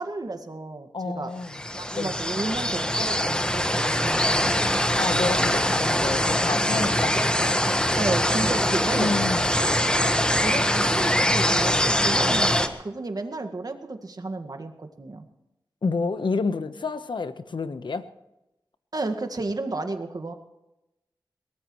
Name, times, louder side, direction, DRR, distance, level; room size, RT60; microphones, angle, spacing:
voice 1, 0.0-1.3 1.7-4.3 8.0-9.1 10.3-15.3 18.9-20.3, right 2 dB, 55° right, 6 dB, 1.8 m, -32 dB
voice 2, 0.9-1.6 1.9-2.2 5.0-7.6 8.9-9.5 15.8-18.1, left 4 dB, 75° left, 10 dB, 1.1 m, -29 dB
sound 1, 1.5-12.7, equal, 10° left, 1.5 m, -23 dB
22.5 x 19.0 x 3.2 m, 0.93 s
wide cardioid pair, 75°, 8 cm